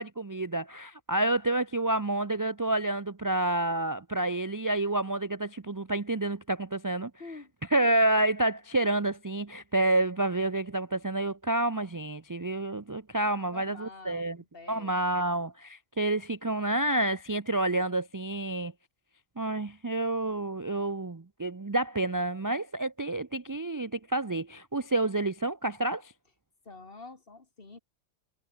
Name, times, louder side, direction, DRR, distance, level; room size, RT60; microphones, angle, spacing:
voice 1, 0.0-7.1 7.7-14.4 14.7-18.7 19.4-26.1, right 2 dB, 30° right, 0.3 m, -29 dB
voice 2, 7.2-7.5 13.5-15.0 26.6-27.8, left 3 dB, 40° left, 2.6 m, -47 dB
omnidirectional pair, 1.5 m